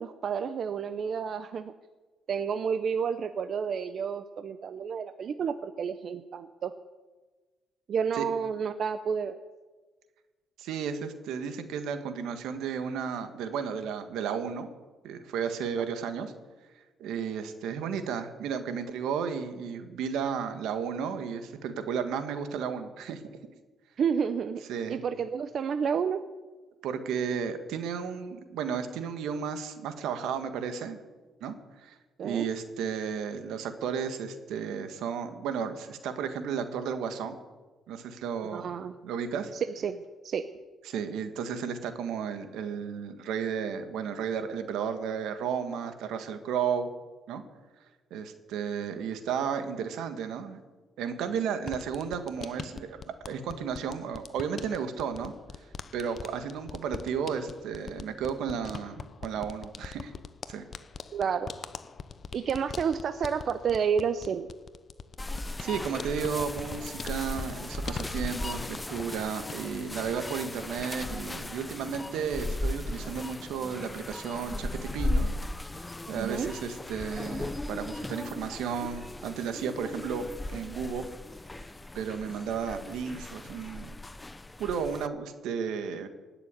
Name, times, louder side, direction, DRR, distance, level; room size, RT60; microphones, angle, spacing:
voice 1, 0.0-1.7 2.3-6.7 7.9-9.4 24.0-24.6 24.9-26.2 32.2-32.5 38.5-39.0 39.5-40.0 40.2-40.5 61.1-61.5 62.3-64.5 76.1-76.5, right 7 dB, 55° right, 10 dB, 0.7 m, -30 dB
voice 2, 10.6-14.7 15.0-16.3 17.0-23.2 24.7-25.0 26.8-31.0 31.4-37.4 37.9-38.7 39.0-39.5 40.8-46.9 47.3-47.4 48.1-50.6 51.0-53.0 53.3-55.3 55.9-60.1 60.5-60.7 65.6-75.3 76.1-81.1 81.6-81.7 81.9-83.9 84.6-86.1, right 7 dB, 85° right, 8 dB, 1.6 m, -33 dB
sound 1, 51.6-69.1 69.4-70.1, left 5 dB, 45° left, 0.8 m, -43 dB
sound 2, 65.2-85.1, left 2 dB, 15° left, 0.6 m, -37 dB
17.5 x 6.9 x 9.6 m, 1.3 s
cardioid pair, 90°, 0 cm